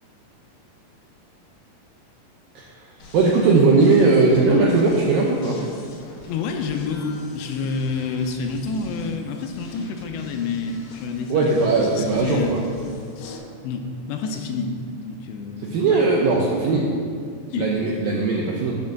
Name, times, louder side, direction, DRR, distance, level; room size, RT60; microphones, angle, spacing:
sound 1, 3.0-13.4, left 2 dB, 55° left, 2.5 m, -44 dB
voice 1, 3.1-5.6 11.3-12.6 15.7-16.9 17.6-18.8, right 3 dB, 80° right, -2 dB, 2.0 m, -18 dB
voice 2, 6.3-12.7 13.2-14.7 15.0-16.0 17.5-17.7, left 4 dB, 85° left, 4 dB, 2.9 m, -28 dB
8.5 x 6.7 x 5.9 m, 2.2 s
omnidirectional pair, 5.0 m